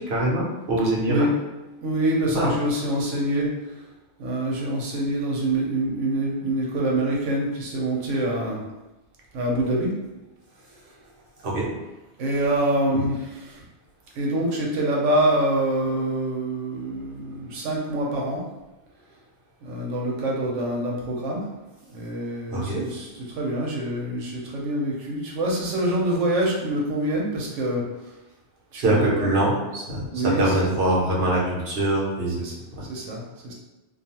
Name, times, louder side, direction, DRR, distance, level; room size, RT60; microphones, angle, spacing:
voice 1, 0.1-1.3 2.3-2.5 11.4-11.7 12.9-13.0 22.5-22.8 28.8-32.4, right 1 dB, 60° right, -5 dB, 0.9 m, -23 dB
voice 2, 1.8-3.5 4.2-8.6 9.3-9.9 12.2-13.6 14.2-18.4 19.6-21.5 21.9-27.9 28.7-29.3 30.1-30.6 32.4-32.5 32.9-33.5, right 1 dB, 85° right, -2 dB, 1.0 m, -25 dB
2.4 x 2.3 x 2.8 m, 1.0 s
omnidirectional pair, 1.2 m